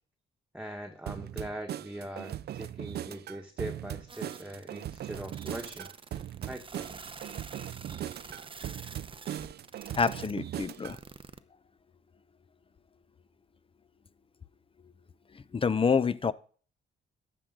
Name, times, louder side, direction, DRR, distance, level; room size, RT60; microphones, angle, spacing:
voice 1, 0.5-5.9 6.5-6.9, right 1 dB, 5° right, 2 dB, 1.5 m, -41 dB
sound 1, 1.1-11.0, right 11 dB, 55° right, 0.5 m, -39 dB
sound 2, 4.1-11.4, right 4 dB, 25° right, 0.8 m, -47 dB
voice 2, 9.9-11.0 15.5-16.3, left 5 dB, 25° left, 16 dB, 0.7 m, -27 dB
12.5 x 8.6 x 3.8 m, 0.41 s
cardioid pair, 90°, 20 cm